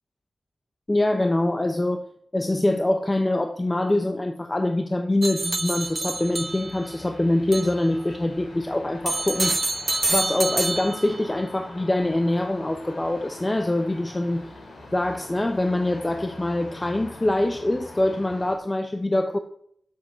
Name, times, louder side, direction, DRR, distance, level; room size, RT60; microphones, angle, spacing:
voice 1, 0.9-2.0 2.3-9.6 10.1-14.5 14.9-19.4, left 1 dB, 20° left, 7 dB, 0.7 m, -24 dB
sound 1, 5.2-6.9 7.5-7.8 9.1-11.3, right 2 dB, 25° right, 0.6 m, -27 dB
sound 2, 5.4-18.6, left 2 dB, 85° left, 3.7 m, -43 dB
12.0 x 7.5 x 5.5 m, 0.70 s
wide cardioid pair, 125°, 0 cm